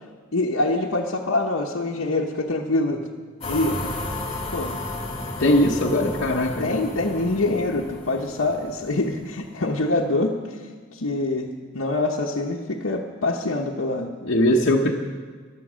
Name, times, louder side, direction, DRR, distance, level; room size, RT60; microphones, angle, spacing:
voice 1, 0.3-3.1 3.5-3.8 4.5-4.8 6.6-10.4 10.9-14.1 14.6-14.7, left 2 dB, 80° left, -3 dB, 1.1 m, -25 dB
sound 1, 3.4-9.6, left 2 dB, 30° left, 2.1 m, -33 dB
voice 2, 5.4-6.7 14.2-14.9, left 1 dB, 55° left, -3 dB, 1.1 m, -20 dB
15.5 x 11.5 x 6.3 m, 1.5 s
head